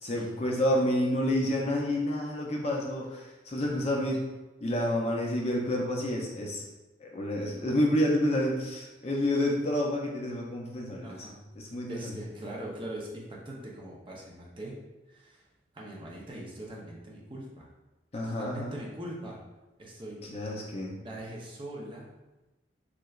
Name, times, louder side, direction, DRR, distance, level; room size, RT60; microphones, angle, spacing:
voice 1, 0.0-4.2 4.6-6.6 7.0-11.3 11.6-12.1 18.1-18.8 20.3-21.0, left 1 dB, 35° left, -2 dB, 0.5 m, -29 dB
voice 2, 11.0-11.4 11.9-14.8 15.1-15.5 15.7-17.7 18.2-19.4 19.8-20.3 21.0-22.1, right 1 dB, 25° right, -3 dB, 0.6 m, -41 dB
3.8 x 3.2 x 2.3 m, 1.1 s
head